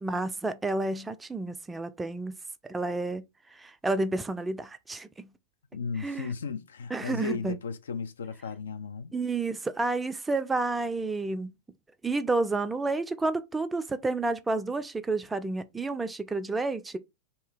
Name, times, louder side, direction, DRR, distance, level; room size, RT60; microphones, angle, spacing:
voice 1, 0.0-2.3 2.6-3.2 3.5-5.3 6.0-6.3 6.9-7.6 9.1-11.5 12.0-17.0, right 3 dB, 10° right, 0.4 m, -30 dB
voice 2, 5.7-9.1, left 5 dB, 65° left, 0.4 m, -35 dB
2.7 x 2.7 x 3.7 m
figure-of-eight pair, 90°, 0 cm